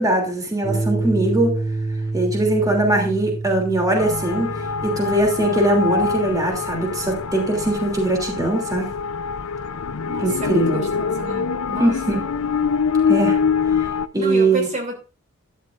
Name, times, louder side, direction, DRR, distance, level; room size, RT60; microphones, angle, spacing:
voice 1, 0.0-1.6 2.1-4.5 4.8-8.9 10.2-10.8 11.8-12.2 13.1-13.4 14.1-14.7, right 2 dB, 15° right, 2.9 m, -21 dB
sound 1, 0.6-7.7, right 2 dB, ahead, 3.6 m, -29 dB
sound 2, 4.0-14.1, left 5 dB, 90° left, 0.6 m, -24 dB
voice 2, 10.1-12.2 14.1-15.0, right 2 dB, 35° right, 2.9 m, -31 dB
13.0 x 11.5 x 2.5 m
head